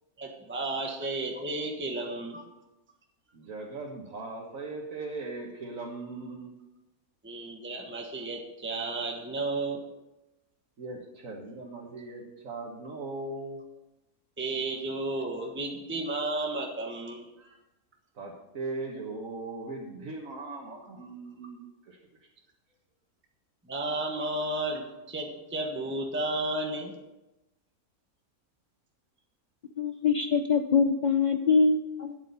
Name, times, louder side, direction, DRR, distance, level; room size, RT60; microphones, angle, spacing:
voice 1, 0.2-2.4 7.2-9.8 14.4-17.3 23.7-26.9, right 2 dB, 10° right, 1 dB, 1.2 m, -33 dB
voice 2, 3.3-6.5 10.8-13.6 17.4-17.6 18.2-22.0, right 3 dB, 60° right, -2 dB, 1.7 m, -39 dB
voice 3, 29.8-32.2, left 5 dB, 70° left, 6 dB, 0.4 m, -24 dB
12.0 x 8.3 x 5.4 m, 0.98 s
omnidirectional pair, 1.6 m